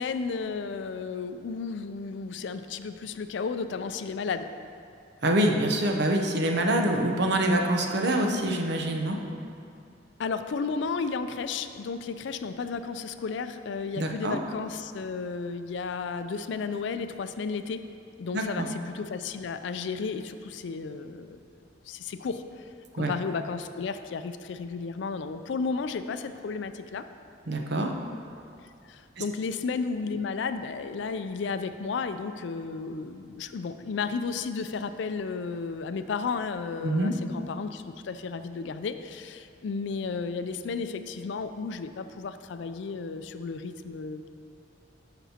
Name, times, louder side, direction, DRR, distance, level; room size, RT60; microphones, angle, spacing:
voice 1, 0.0-4.5 8.3-8.6 10.2-17.8 18.2-21.4 21.9-22.4 22.9-27.0 28.9-44.3, left 5 dB, 70° left, 10 dB, 0.4 m, -33 dB
voice 2, 5.2-9.2 14.0-14.4 18.3-18.7 23.0-23.1 27.5-27.9 36.8-37.1, right 1 dB, 65° right, 2 dB, 0.8 m, -25 dB
12.5 x 6.1 x 2.8 m, 2.5 s
head